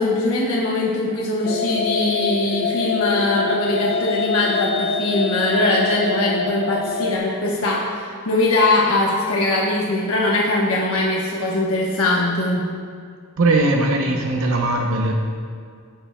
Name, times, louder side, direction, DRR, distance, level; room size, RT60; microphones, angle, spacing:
voice 1, 0.0-12.6, left 2 dB, 75° left, -4 dB, 1.1 m, -21 dB
sound 1, 1.4-7.2, left 4 dB, 55° left, 0.5 m, -24 dB
voice 2, 13.4-15.1, right 2 dB, 70° right, 1 dB, 0.7 m, -19 dB
15.0 x 7.0 x 2.2 m, 2.1 s
head